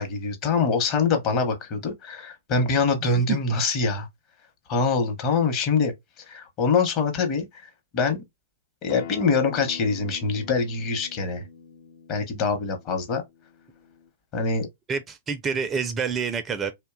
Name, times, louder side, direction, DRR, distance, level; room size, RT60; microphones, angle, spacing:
voice 1, 0.0-4.1 4.7-8.2 8.8-11.4 12.1-13.2 14.3-14.7, left 4 dB, 35° left, 0.8 m, -24 dB
voice 2, 3.0-3.4 14.9-16.7, right 6 dB, 20° right, 0.4 m, -28 dB
Acoustic guitar, 8.9-14.1, left 7 dB, 60° left, 0.5 m, -43 dB
2.7 x 2.2 x 2.3 m
hypercardioid pair, 110°, 0 cm